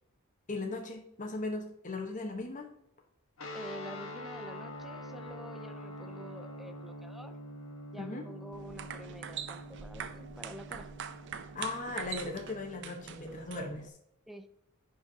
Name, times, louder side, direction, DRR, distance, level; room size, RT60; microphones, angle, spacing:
voice 1, 0.5-2.7 8.0-8.3 11.5-13.9, left 2 dB, 35° left, 2 dB, 1.2 m, -38 dB
sound 1, 3.4-13.7, equal, 65° left, 1.5 m, -46 dB
voice 2, 3.5-7.4 7.9-10.9 14.3-14.5, right 1 dB, ahead, 8 dB, 0.6 m, -48 dB
sound 2, 8.5-13.9, right 8 dB, 55° right, 0.6 m, -43 dB
10.5 x 5.6 x 2.8 m, 0.76 s
head